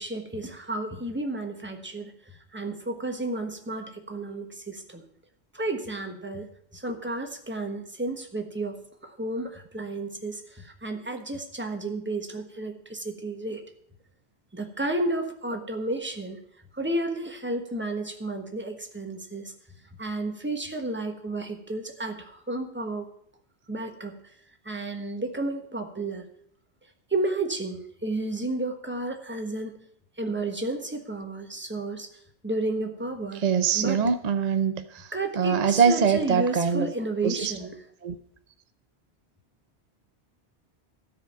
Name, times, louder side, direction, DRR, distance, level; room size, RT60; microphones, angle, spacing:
voice 1, 0.0-5.0 5.5-13.6 14.5-16.4 16.7-19.5 20.0-23.1 23.7-24.2 24.6-26.2 27.1-29.8 30.2-32.1 32.4-33.4 33.7-34.0 35.1-37.7, right 2 dB, 10° right, 4 dB, 1.3 m, -32 dB
voice 2, 33.3-36.9 37.2-37.5 38.0-38.1, right 7 dB, 45° right, 9 dB, 0.6 m, -24 dB
13.5 x 5.0 x 8.7 m, 0.69 s
omnidirectional pair, 1.1 m